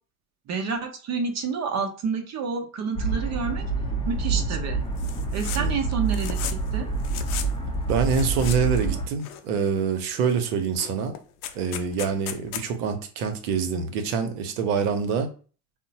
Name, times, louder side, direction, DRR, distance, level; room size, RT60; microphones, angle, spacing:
voice 1, 0.5-3.7 4.1-4.8 5.3-6.9, right 5 dB, 35° right, 0.7 m, -29 dB
sound 1, 2.9-9.1, right 4 dB, 10° left, 0.6 m, -27 dB
sound 2, 5.0-5.6 5.9-6.7 7.0-7.5 8.0-8.9 9.2-9.8 10.2-10.4 10.6-12.7, left 10 dB, 75° left, 0.6 m, -36 dB
voice 2, 7.9-11.2 11.5-15.3, right 6 dB, 65° right, 0.8 m, -26 dB
3.6 x 2.1 x 2.7 m
hypercardioid pair, 75°, 47 cm